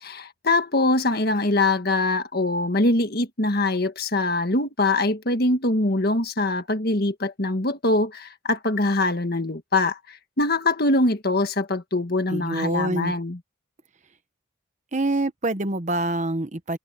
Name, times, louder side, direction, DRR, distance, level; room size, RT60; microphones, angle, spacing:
voice 1, 0.0-13.4, left 2 dB, 50° left, 1.7 m, -23 dB
voice 2, 12.3-13.1 14.9-16.8, right 2 dB, 35° right, 1.1 m, -26 dB
head